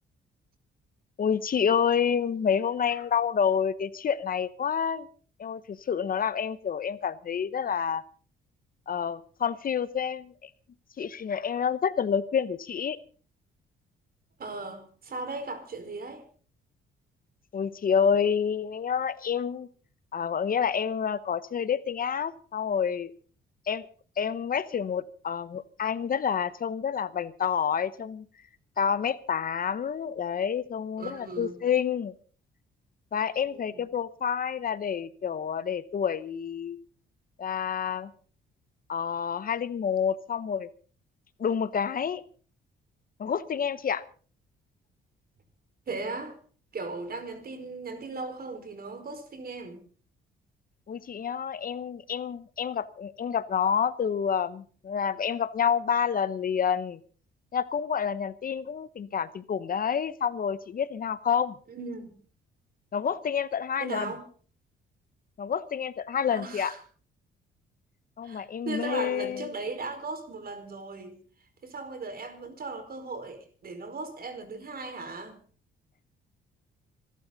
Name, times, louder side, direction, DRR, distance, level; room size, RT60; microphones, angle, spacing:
voice 1, 1.2-5.1 5.4-8.0 8.9-10.5 11.0-13.0 17.5-19.7 20.1-23.1 23.7-23.9 24.2-28.3 28.8-32.1 33.1-36.8 37.4-38.1 38.9-40.7 41.4-42.2 43.2-44.0 50.9-57.0 57.5-61.5 62.9-64.1 65.4-66.7 68.2-69.5, left 7 dB, 45° left, 0.9 m, -28 dB
voice 2, 14.4-16.2 31.0-31.6 33.4-33.8 45.9-46.4 46.7-49.8 61.7-62.2 63.8-64.2 66.3-66.8 68.2-71.2 71.6-75.4, right 3 dB, 50° right, 4.8 m, -37 dB
26.5 x 12.0 x 4.0 m
cardioid pair, 90°, 20 cm